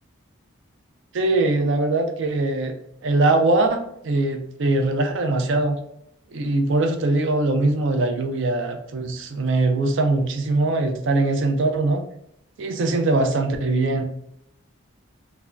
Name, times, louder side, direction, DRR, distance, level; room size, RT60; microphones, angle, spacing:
voice 1, 1.1-2.7 3.0-5.8 6.3-12.0 12.6-14.0, right 2 dB, 60° right, 6 dB, 0.4 m, -21 dB
3.4 x 2.1 x 2.4 m, 0.78 s
head